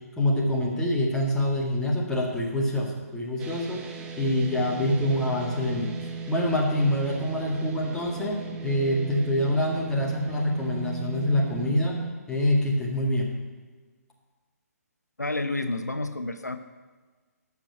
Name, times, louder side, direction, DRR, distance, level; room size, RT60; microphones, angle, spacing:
voice 1, 0.2-5.9 6.3-12.0 12.3-13.3, left 1 dB, 5° left, -3 dB, 2.0 m, -26 dB
sound 1, 3.4-12.1, right 5 dB, 10° right, 0.9 m, -36 dB
voice 2, 15.2-16.6, left 2 dB, 80° left, 9 dB, 0.8 m, -30 dB
13.0 x 6.0 x 8.9 m, 1.4 s
figure-of-eight pair, 135°, 9 cm